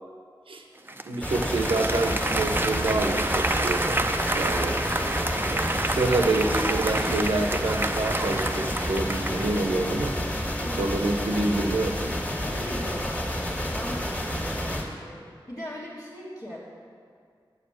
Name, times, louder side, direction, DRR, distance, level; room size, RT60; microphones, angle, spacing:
Applause, 0.9-9.8, right 2 dB, 25° right, 0.5 m, -29 dB
voice 1, 1.0-4.0 4.3-4.8 5.4-10.1 10.8-11.9, right 2 dB, 80° right, 3 dB, 0.8 m, -27 dB
Synthetic steam train, 1.2-14.8, equal, 15° left, 1.7 m, -30 dB
Car passing by / Truck, 2.0-7.6, left 1 dB, 70° left, 1.2 m, -44 dB
voice 2, 10.6-11.0 12.4-15.2 15.5-16.7, equal, 50° left, -10 dB, 1.6 m, -39 dB
8.1 x 4.9 x 7.1 m, 2.2 s
cardioid pair, 40°, 9 cm